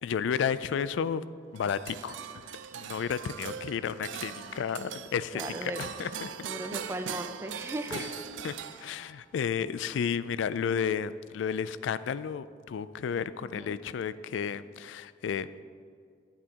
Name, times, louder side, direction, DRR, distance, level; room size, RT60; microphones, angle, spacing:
voice 1, 0.0-1.2 1.5-2.4 2.7-6.3 7.9-8.1 8.4-8.5 8.8-15.6, left 7 dB, 80° left, 16 dB, 0.3 m, -32 dB
sound 1, 1.5-9.2, right 8 dB, 85° right, 0.4 m, -41 dB
voice 2, 5.3-5.8 6.4-8.1 13.4-13.7, right 1 dB, 15° right, 8 dB, 0.4 m, -37 dB
12.0 x 8.5 x 2.8 m, 2.1 s
head